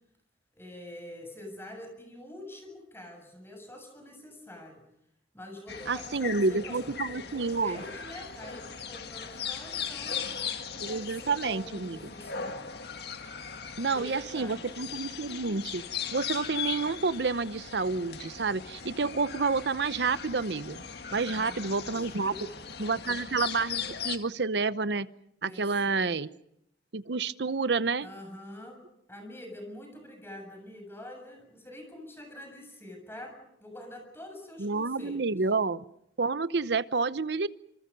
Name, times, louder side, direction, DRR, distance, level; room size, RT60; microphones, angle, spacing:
voice 1, 0.6-4.8 5.3-10.2 10.7-12.7 13.9-15.0 21.1-22.5 25.4-26.1 28.0-28.8 29.1-35.4, left 1 dB, 15° left, 4 dB, 7.2 m, -46 dB
sound 1, 5.7-24.2, left 7 dB, 60° left, 1.9 m, -39 dB
voice 2, 5.9-7.8 10.8-12.0 13.8-15.8 16.1-20.8 21.1-22.3 22.8-25.1 25.4-26.3 26.9-28.1 34.6-35.8 36.2-37.5, right 4 dB, 70° right, 15 dB, 0.8 m, -29 dB
26.5 x 26.5 x 5.3 m, 0.77 s
head